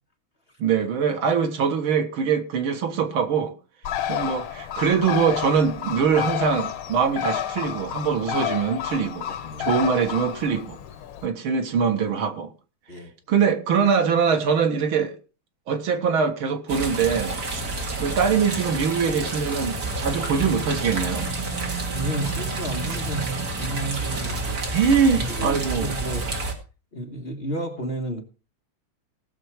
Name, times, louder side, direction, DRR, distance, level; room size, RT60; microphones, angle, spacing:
voice 1, 0.6-3.5 4.1-9.3 9.6-10.8 11.2-12.5 13.3-15.2 15.7-17.6 18.0-21.3 24.7-25.9, right 6 dB, 80° right, 2.2 m, -23 dB
Bird, 3.8-11.3, left 10 dB, 90° left, 1.8 m, -30 dB
voice 2, 9.3-9.7 12.9-13.1 17.6-17.9 21.9-24.9 25.2-26.3 26.9-28.2, right 1 dB, 35° left, 1.3 m, -32 dB
sound 1, 16.7-26.5, right 3 dB, 45° right, 2.4 m, -29 dB
18.0 x 6.9 x 4.7 m
omnidirectional pair, 2.3 m